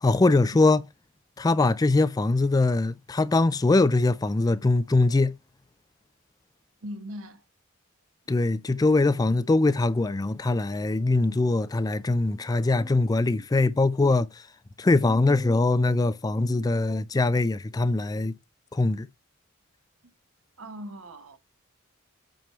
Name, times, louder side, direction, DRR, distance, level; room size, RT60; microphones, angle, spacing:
voice 1, 0.0-0.8 1.4-5.3 8.3-14.4 14.8-18.3 18.7-19.1, left 2 dB, 20° left, 0.3 m, -22 dB
voice 2, 6.8-7.4 20.6-21.4, equal, 85° right, 1.1 m, -39 dB
7.8 x 3.4 x 4.3 m
head